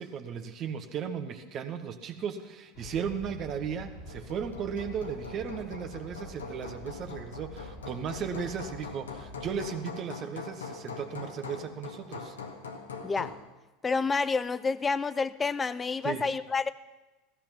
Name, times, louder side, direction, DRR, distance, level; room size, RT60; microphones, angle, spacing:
voice 1, 0.0-12.4 16.0-16.2, right 7 dB, 40° right, 7 dB, 1.5 m, -36 dB
sound 1, 2.7-9.7, left 1 dB, 50° left, 1.8 m, -47 dB
Hammer, 3.8-13.5, left 5 dB, 75° left, 1.8 m, -43 dB
voice 2, 13.8-16.7, left 4 dB, 20° left, 16 dB, 0.6 m, -29 dB
16.5 x 14.5 x 5.9 m, 1.1 s
figure-of-eight pair, 75°, 0 cm